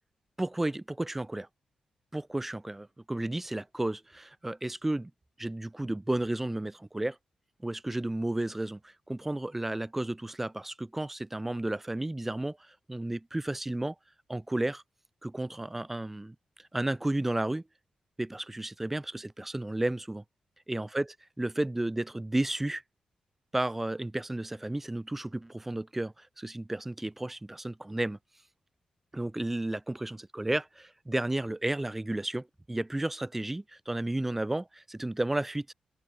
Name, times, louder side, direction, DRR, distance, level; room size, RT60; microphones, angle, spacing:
voice 1, 0.4-1.5 2.1-5.1 5.4-7.2 7.6-13.9 14.3-14.8 15.2-16.3 16.7-17.6 18.2-20.2 20.7-21.1 21.4-22.8 23.5-28.2 29.1-35.7, right 1 dB, 10° right, 5.8 m, -32 dB
open air
wide cardioid pair, 160°, 2 cm